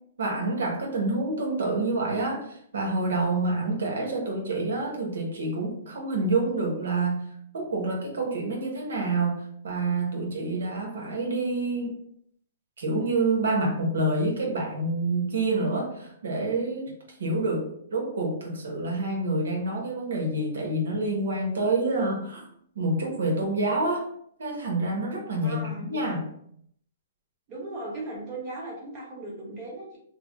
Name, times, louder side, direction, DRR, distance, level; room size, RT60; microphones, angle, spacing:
voice 1, 0.2-7.2 7.5-11.9 12.8-22.5 22.7-24.0 24.4-26.3, right 2 dB, 90° right, 0 dB, 1.0 m, -27 dB
voice 2, 25.4-26.2 27.5-30.0, right 2 dB, 25° right, -4 dB, 1.1 m, -37 dB
3.3 x 2.1 x 3.7 m, 0.68 s
hypercardioid pair, 165°, 0 cm